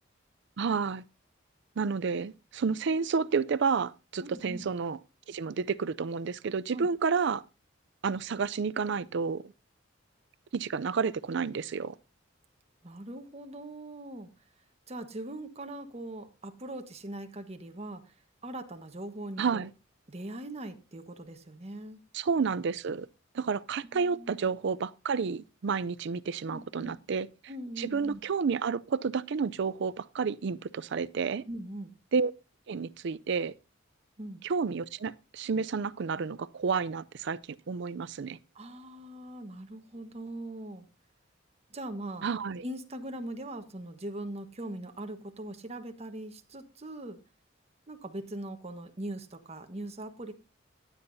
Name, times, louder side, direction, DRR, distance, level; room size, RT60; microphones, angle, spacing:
voice 1, 0.6-1.0 1.8-5.0 5.3-7.4 8.0-9.4 10.5-11.9 19.4-19.7 22.1-23.1 23.3-27.3 27.8-31.4 32.1-32.3 32.7-33.5 34.4-37.4 37.7-38.4 42.2-42.6, right 5 dB, 60° right, 0.5 m, -30 dB
voice 2, 4.2-4.7 6.7-6.9 12.8-14.3 14.9-18.2 18.4-19.6 20.1-22.0 23.9-24.5 26.5-26.9 27.5-28.2 31.4-31.9 34.2-34.4 38.5-40.9 41.7-42.2 42.6-47.2 47.9-50.3, right 1 dB, 30° right, 1.3 m, -41 dB
15.0 x 9.7 x 2.7 m
head